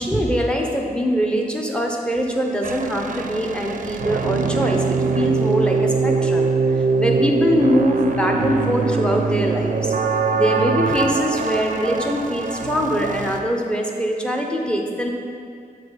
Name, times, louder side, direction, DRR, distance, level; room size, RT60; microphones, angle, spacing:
voice 1, 0.0-6.5 6.8-9.9 10.3-15.1, equal, 5° left, 1 dB, 0.7 m, -22 dB
sound 1, 2.6-13.4, right 4 dB, 55° right, 0.4 m, -22 dB
7.6 x 3.3 x 5.5 m, 2.4 s
wide cardioid pair, 105°, 16 cm